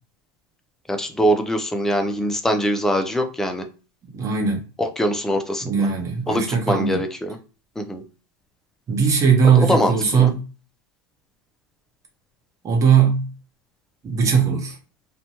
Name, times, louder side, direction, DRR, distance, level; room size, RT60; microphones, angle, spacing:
voice 1, 0.9-3.6 4.8-5.9 6.3-7.4 7.8-8.0 9.6-10.3, equal, 5° left, 0.3 m, -23 dB
voice 2, 4.1-4.6 5.6-7.0 8.9-10.4 12.6-13.3 14.0-14.8, right 6 dB, 25° right, 0.8 m, -19 dB
2.8 x 2.1 x 2.8 m
hypercardioid pair, 125°, 13 cm